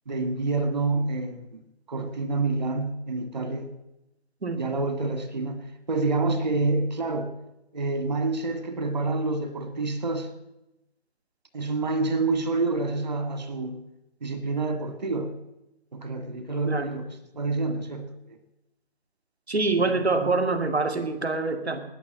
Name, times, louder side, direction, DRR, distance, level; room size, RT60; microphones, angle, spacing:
voice 1, 0.1-1.6 1.9-3.7 4.5-7.3 7.7-10.3 11.5-13.8 14.2-15.3 15.9-17.0 17.3-18.4 19.8-20.4, right 3 dB, 45° right, 9 dB, 1.8 m, -28 dB
voice 2, 19.5-21.8, right 3 dB, 85° right, 8 dB, 2.1 m, -25 dB
19.0 x 7.4 x 7.5 m, 0.90 s
figure-of-eight pair, 165°, 31 cm